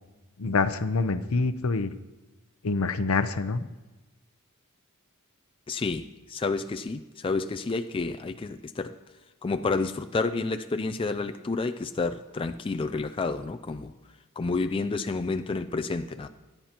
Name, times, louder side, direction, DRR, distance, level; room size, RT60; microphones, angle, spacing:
voice 1, 0.4-1.9 2.6-3.6, left 3 dB, 70° left, 11 dB, 0.7 m, -26 dB
voice 2, 5.7-8.9 9.4-13.9 14.4-16.3, left 3 dB, 25° left, 7 dB, 0.4 m, -30 dB
25.0 x 10.0 x 3.0 m, 1.2 s
head